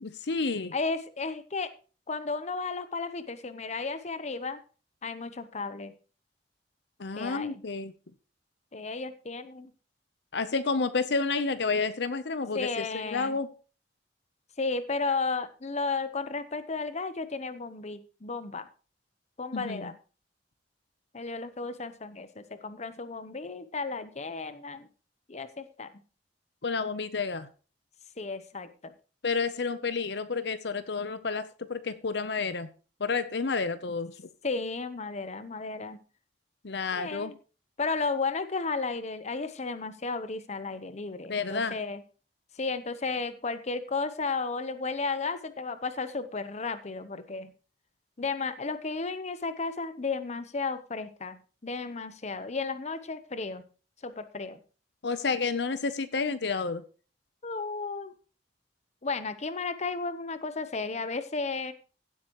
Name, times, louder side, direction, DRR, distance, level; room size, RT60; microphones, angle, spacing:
voice 1, 0.0-0.7 7.0-7.9 10.3-13.5 19.5-19.9 26.6-27.5 29.2-32.7 33.0-34.3 36.6-37.3 41.3-41.8 55.0-56.8, left 4 dB, 70° left, 0.8 m, -30 dB
voice 2, 0.7-1.7 2.1-4.6 5.0-5.9 7.2-7.5 8.7-9.7 12.5-13.4 14.6-18.7 19.4-19.9 21.1-24.9 25.3-25.9 28.2-28.9 34.4-36.0 36.9-37.3 37.8-42.0 42.5-47.5 48.2-53.6 54.0-54.6 57.4-58.1 59.0-61.7, left 4 dB, 40° left, 0.9 m, -33 dB
16.0 x 8.1 x 3.1 m
head